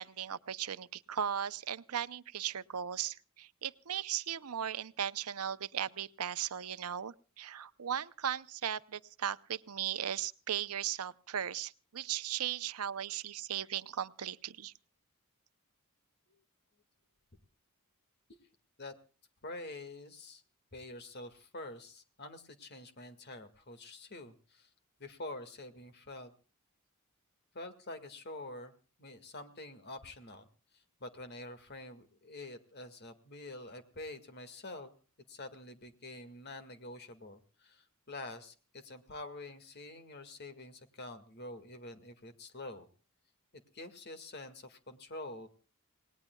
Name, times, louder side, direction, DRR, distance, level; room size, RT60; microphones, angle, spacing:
voice 1, 0.0-14.7, right 9 dB, 90° right, 14 dB, 0.7 m, -37 dB
voice 2, 19.4-20.4 20.7-24.7 25.0-26.3 27.5-28.7 29.0-30.5 30.7-34.9 35.3-42.9 43.7-45.5, left 2 dB, 50° left, 9 dB, 2.0 m, -47 dB
28.0 x 19.5 x 2.3 m, 0.37 s
head